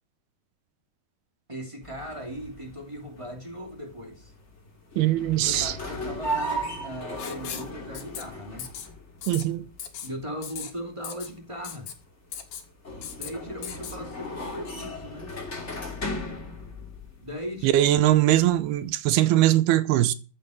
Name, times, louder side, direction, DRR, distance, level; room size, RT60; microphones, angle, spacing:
voice 1, 1.5-4.3 5.4-8.7 10.0-11.9 13.1-15.3 17.2-18.1, equal, 10° right, 2.4 m, -38 dB
sound 1, 1.8-18.9, equal, 20° left, 2.9 m, -37 dB
voice 2, 5.0-5.7 9.3-9.7 17.6-20.1, right 14 dB, 85° right, 2.9 m, -21 dB
Writing, 7.2-7.7 7.9-8.2 8.6-8.9 9.2-9.4 9.8-10.1 10.4-10.7 11.0-11.3 11.6-11.9 12.3-12.6 13.0-13.3 13.6-14.0, left 8 dB, 70° left, 3.7 m, -37 dB
15.0 x 8.4 x 6.5 m
omnidirectional pair, 4.4 m